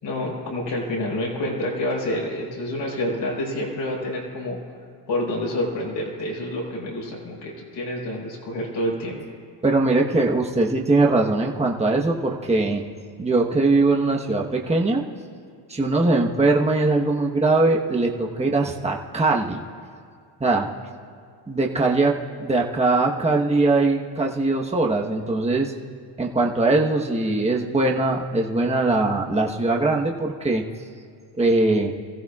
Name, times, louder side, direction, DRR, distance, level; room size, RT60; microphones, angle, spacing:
voice 1, 0.0-4.6 5.1-9.2 16.0-16.1, left 1 dB, 70° left, -3 dB, 4.6 m, -28 dB
voice 2, 9.6-12.8 13.2-15.0 15.7-19.6 20.4-20.7 21.5-25.7 26.2-30.6 31.4-31.9, right 2 dB, 15° right, 0 dB, 1.1 m, -21 dB
25.5 x 15.5 x 2.4 m, 2.2 s
cardioid pair, 85°, 45 cm